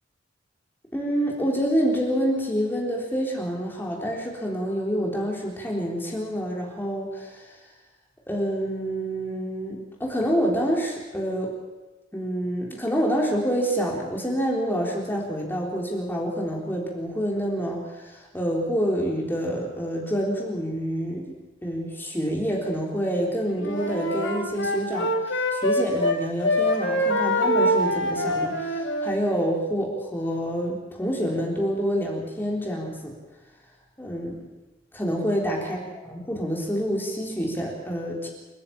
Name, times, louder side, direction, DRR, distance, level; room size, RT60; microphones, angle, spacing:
voice 1, 0.9-7.4 8.3-11.5 12.1-21.4 21.6-33.1 34.0-34.4 34.9-35.8 36.1-38.3, equal, 10° left, -2 dB, 3.9 m, -27 dB
Wind instrument woodwind instrument, 23.6-26.2 26.4-29.2, left 1 dB, 80° left, 3.3 m, -24 dB
29.5 x 10.5 x 8.9 m, 1.1 s
head